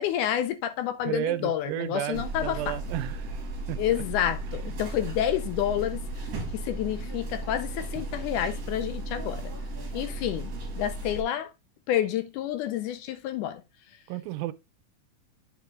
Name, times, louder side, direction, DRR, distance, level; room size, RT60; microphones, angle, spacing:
voice 1, 0.0-2.6 3.8-6.0 6.5-9.4 9.9-11.5 11.9-13.6, left 11 dB, 75° left, 1.9 m, -29 dB
voice 2, 1.0-3.4 3.7-3.8 4.6-4.8 14.1-14.5, right 16 dB, 85° right, 2.3 m, -32 dB
sound 1, 2.1-11.2, right 2 dB, 50° right, 2.4 m, -35 dB
9.0 x 3.6 x 3.5 m
omnidirectional pair, 4.0 m